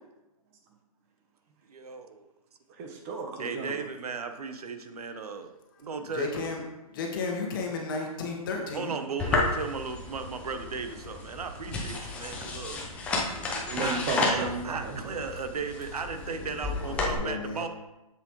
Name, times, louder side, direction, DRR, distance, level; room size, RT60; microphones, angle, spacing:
voice 1, 1.7-2.3 3.4-5.5 5.8-6.4 8.7-12.8 13.8-17.7, right 5 dB, 90° right, 7 dB, 0.9 m, -36 dB
voice 2, 2.8-3.8 13.4-15.2, right 3 dB, 25° right, 3 dB, 0.8 m, -34 dB
voice 3, 6.1-6.6 6.9-8.9 16.3-17.6, left 4 dB, 35° left, 0 dB, 1.4 m, -34 dB
sound 1, 9.2-17.1, left 3 dB, 5° left, 0.5 m, -32 dB
7.3 x 7.0 x 3.1 m, 0.98 s
hypercardioid pair, 165°, 19 cm